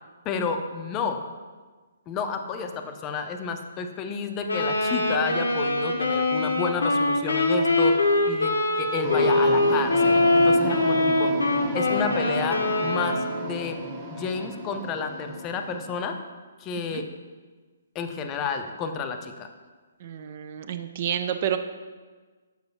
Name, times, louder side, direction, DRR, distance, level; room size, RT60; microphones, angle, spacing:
voice 1, 0.2-1.2 2.1-11.3 11.7-13.8 14.1-16.2 16.6-17.1 17.9-19.5, left 5 dB, 25° left, 6 dB, 0.5 m, -30 dB
Wind instrument woodwind instrument, 4.5-13.5, left 2 dB, 85° left, 0.8 m, -23 dB
sound 1, 9.0-15.9, right 1 dB, 30° right, 1.0 m, -34 dB
voice 2, 20.0-21.6, right 9 dB, 45° right, 9 dB, 0.4 m, -29 dB
6.7 x 6.1 x 2.7 m, 1.4 s
figure-of-eight pair, 130°, 0 cm